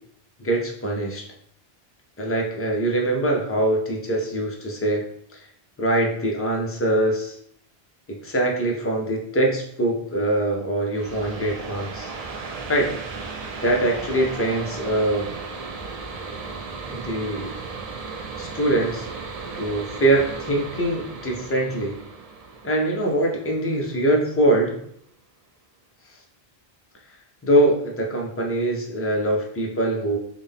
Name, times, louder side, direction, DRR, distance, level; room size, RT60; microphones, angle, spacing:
voice 1, 0.4-1.2 2.2-5.0 5.3-5.4 5.8-7.4 8.1-12.1 12.7-12.9 13.6-15.3 16.9-17.5 18.4-19.1 19.5-22.0 22.6-24.7 27.4-30.2, right 1 dB, 20° left, -1 dB, 0.4 m, -23 dB
sound 1, 10.9-24.3, right 4 dB, 50° right, 0.5 m, -36 dB
3.7 x 2.1 x 3.5 m, 0.68 s
omnidirectional pair, 1.0 m